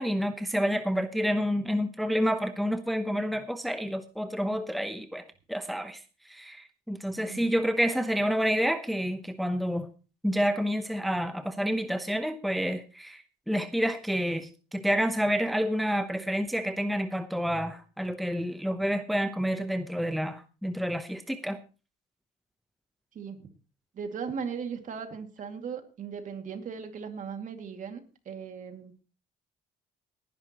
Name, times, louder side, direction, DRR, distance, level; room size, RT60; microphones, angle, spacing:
voice 1, 0.0-6.0 6.3-9.9 10.2-21.6, equal, ahead, 9 dB, 0.9 m, -29 dB
voice 2, 7.2-7.5 16.2-16.3 23.1-23.5 23.9-29.0, right 6 dB, 50° right, 7 dB, 2.4 m, -38 dB
18.5 x 11.0 x 3.0 m, 0.33 s
cardioid pair, 110°, 17 cm